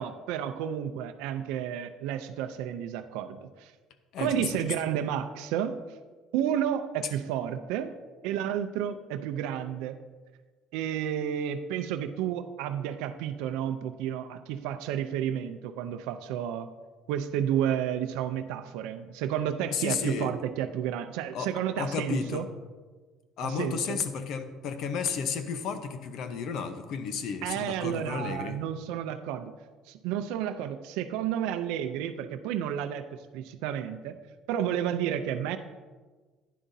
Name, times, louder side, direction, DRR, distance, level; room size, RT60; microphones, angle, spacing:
voice 1, 0.0-3.7 4.2-5.8 6.3-7.9 8.2-10.0 10.7-16.7 17.1-22.4 23.4-24.0 27.4-29.5 29.9-34.2 34.5-35.6, right 10 dB, 85° right, 9 dB, 0.5 m, -31 dB
voice 2, 4.1-4.7 7.0-7.2 19.7-20.3 21.3-21.5 21.8-22.5 23.4-28.6, left 6 dB, 55° left, 9 dB, 0.8 m, -33 dB
11.0 x 10.0 x 2.7 m, 1.4 s
cardioid pair, 150°, 0 cm